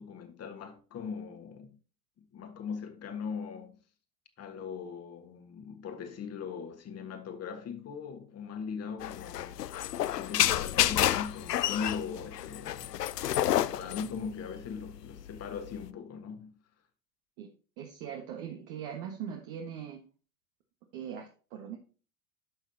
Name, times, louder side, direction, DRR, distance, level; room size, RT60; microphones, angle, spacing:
voice 1, 0.0-1.8 2.2-3.8 4.4-9.7 10.1-13.0 13.5-16.5, left 6 dB, 30° left, 1.6 m, -40 dB
sound 1, 9.0-15.9, left 12 dB, 90° left, 0.5 m, -30 dB
voice 2, 17.8-20.0 20.9-21.8, right 8 dB, 60° right, 1.6 m, -40 dB
11.5 x 6.0 x 2.8 m
hypercardioid pair, 90°, 47 cm